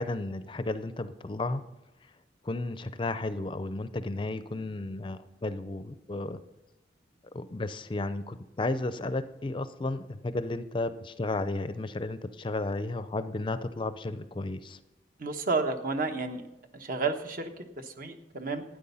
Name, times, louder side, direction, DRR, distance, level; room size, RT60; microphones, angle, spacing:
voice 1, 0.0-1.6 2.4-6.4 7.3-14.8, left 2 dB, 25° left, 12 dB, 0.5 m, -33 dB
voice 2, 15.2-16.5 16.7-18.6, right 3 dB, 50° right, 7 dB, 1.1 m, -31 dB
12.5 x 9.5 x 5.6 m, 1.0 s
head